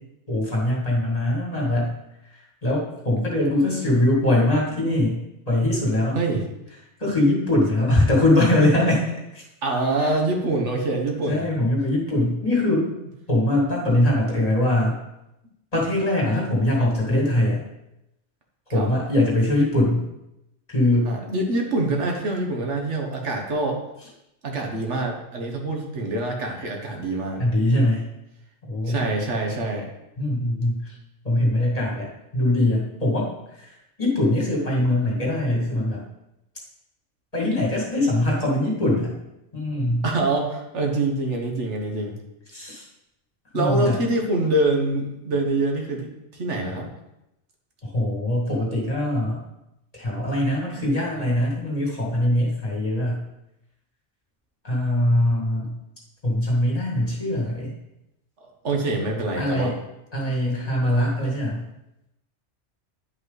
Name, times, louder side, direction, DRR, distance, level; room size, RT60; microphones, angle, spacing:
voice 1, 0.3-1.9 2.2-5.2 5.5-6.2 7.0-9.0 9.3-9.4 10.0-10.1 11.3-12.9 13.3-15.0 15.7-17.6 18.7-20.1 20.7-21.1 27.4-28.0 28.6-29.1 30.2-31.0 31.2-36.0 37.3-39.2 39.5-40.0 42.5-42.9 43.5-44.0 47.8-49.4 49.9-53.2 54.6-55.8 56.2-57.7 59.4-59.8 60.1-61.6, left 1 dB, 35° left, -4 dB, 2.5 m, -22 dB
voice 2, 9.6-11.5 18.7-18.9 21.0-23.8 24.4-27.4 28.8-29.9 40.0-42.2 43.5-46.9 58.4-59.7, right 2 dB, 80° right, 1 dB, 1.7 m, -25 dB
10.5 x 5.4 x 4.1 m, 0.88 s
omnidirectional pair, 1.2 m